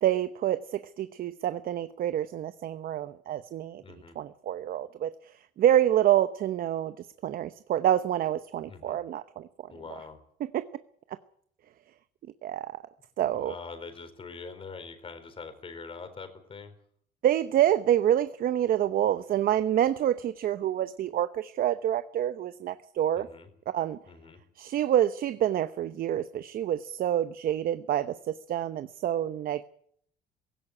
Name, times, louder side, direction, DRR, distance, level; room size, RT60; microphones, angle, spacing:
voice 1, 0.0-3.8 4.2-9.5 10.5-10.7 12.4-12.8 13.2-13.5 17.2-23.3 23.7-24.0 24.6-29.6, right 11 dB, 60° right, 12 dB, 0.9 m, -27 dB
voice 2, 3.8-4.2 8.7-9.0 9.7-10.2 13.2-16.7 23.2-23.5 24.1-24.4, left 4 dB, 35° left, 9 dB, 4.2 m, -44 dB
16.5 x 16.5 x 9.8 m, 0.65 s
cardioid pair, 110°, 17 cm